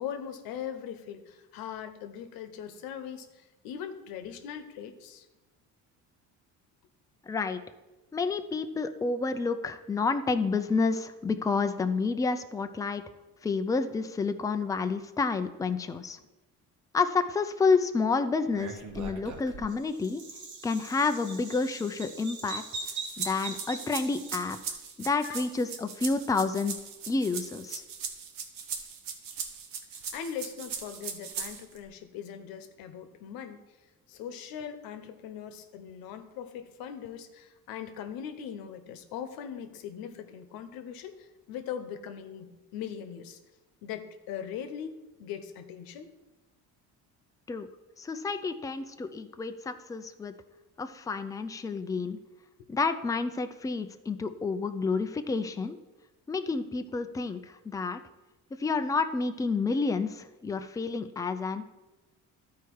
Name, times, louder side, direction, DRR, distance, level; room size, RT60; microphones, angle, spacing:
voice 1, 0.0-5.3 25.2-25.4 30.1-33.6 34.1-43.4 43.8-46.1, left 8 dB, 90° left, 8 dB, 1.0 m, -40 dB
voice 2, 7.3-7.6 8.1-13.0 13.4-16.2 16.9-20.2 20.6-22.6 23.2-24.6 25.0-26.8 27.1-27.8 47.5-47.7 48.0-50.3 50.8-52.2 52.7-55.8 56.3-58.0 58.6-61.8, left 4 dB, 10° left, 8 dB, 0.4 m, -29 dB
Bird vocalization bird call bird song, 18.5-24.8, right 4 dB, 55° right, 1.4 m, -41 dB
sound 1, 22.7-31.8, right 6 dB, 70° right, 1.1 m, -39 dB
12.5 x 4.7 x 4.6 m, 1.1 s
cardioid pair, 115°, 34 cm